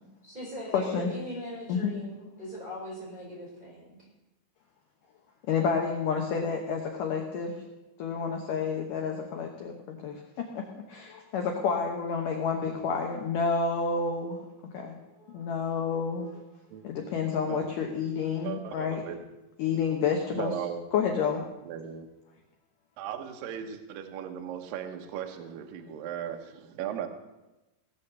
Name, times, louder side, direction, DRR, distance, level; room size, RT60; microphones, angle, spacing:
voice 1, 0.2-4.0 14.9-15.9 16.2-16.4, equal, 10° right, -5 dB, 4.1 m, -41 dB
voice 2, 0.7-1.1 1.7-1.9 5.5-7.5 8.0-10.6 10.9-14.4 14.7-15.0 15.3-16.3 16.8-19.0 19.6-20.5 20.9-21.4, left 5 dB, 85° left, 2 dB, 1.8 m, -29 dB
voice 3, 17.5-17.9 18.4-19.2 20.3-20.9 21.6-22.1 23.0-27.1, right 9 dB, 85° right, 5 dB, 1.9 m, -37 dB
17.0 x 7.2 x 6.9 m, 1.0 s
omnidirectional pair, 5.5 m